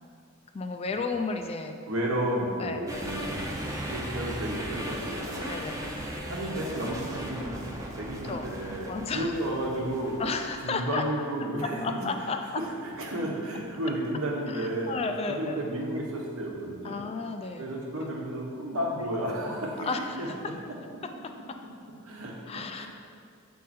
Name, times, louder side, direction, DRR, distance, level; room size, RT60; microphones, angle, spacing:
voice 1, 0.5-1.8 2.6-3.1 5.5-6.0 8.3-8.5 8.9-9.3 10.2-11.0 11.6-12.6 14.5-15.6 16.8-17.7 18.0-18.1 19.8-20.5 22.5-22.9, left 4 dB, 30° left, 5 dB, 0.3 m, -33 dB
voice 2, 1.9-3.4 3.9-5.5 6.3-10.2 10.6-12.3 12.5-12.7 13.0-15.0 15.3-17.0 17.6-19.9 20.2-20.5 22.0-22.3 22.8-22.9, right 1 dB, 85° right, -2 dB, 1.1 m, -32 dB
sound 1, 2.9-10.5, equal, 15° right, 0.6 m, -37 dB
7.4 x 3.7 x 4.2 m, 2.3 s
head